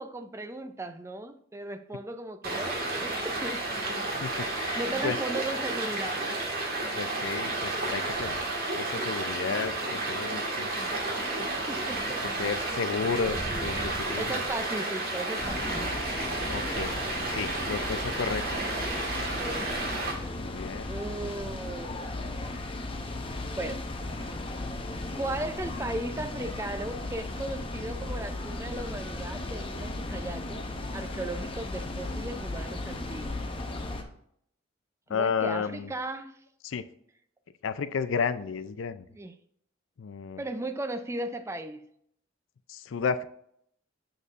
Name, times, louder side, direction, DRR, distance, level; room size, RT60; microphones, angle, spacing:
voice 1, 0.0-3.6 4.4-6.5 11.7-12.4 13.2-13.7 14.2-15.9 19.4-20.3 20.8-22.0 23.6-23.8 25.1-30.7 30.9-33.4 35.1-36.3 39.1-39.3 40.4-41.9, right 2 dB, 15° right, 0.4 m, -37 dB
Stream, 2.4-20.1, right 2 dB, 50° right, 1.8 m, -31 dB
voice 2, 4.2-5.2 6.9-8.4 8.7-10.8 12.4-14.4 16.4-16.9 17.3-18.4 20.3-20.9 35.1-35.9 36.6-36.8 37.6-39.1 40.0-40.4 42.7-43.2, left 5 dB, 85° left, 0.4 m, -32 dB
sound 1, 15.4-34.0, left 2 dB, 30° left, 0.7 m, -36 dB
6.8 x 6.4 x 2.5 m
head